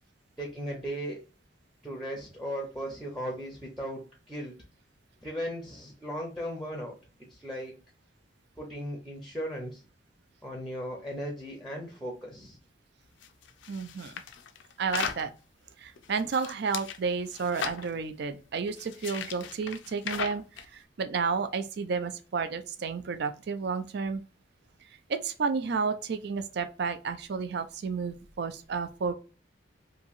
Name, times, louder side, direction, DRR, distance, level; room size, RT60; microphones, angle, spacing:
voice 1, 0.4-1.2 1.8-4.5 5.2-6.9 7.3-7.8 8.6-9.8 10.4-12.6, equal, ahead, 0.6 m, -37 dB
sound 1, 13.2-15.3 16.0-17.0 17.3-17.9 18.7-20.7, left 7 dB, 75° left, 0.4 m, -37 dB
voice 2, 13.7-14.1 14.8-15.3 15.8-24.2 25.1-29.1, right 5 dB, 60° right, 0.4 m, -31 dB
2.9 x 2.7 x 2.4 m
head